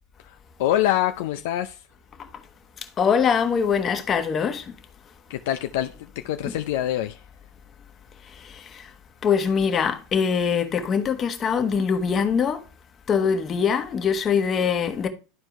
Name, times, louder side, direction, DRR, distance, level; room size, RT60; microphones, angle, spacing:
voice 1, 0.6-1.8 5.3-5.9 6.2-7.2, left 12 dB, 70° left, 0.5 m, -24 dB
voice 2, 3.0-4.8 6.4-6.6 8.4-8.9 9.2-12.6 13.1-15.1, left 6 dB, 35° left, 1.2 m, -23 dB
12.0 x 4.5 x 3.0 m
hypercardioid pair, 90°, 0 cm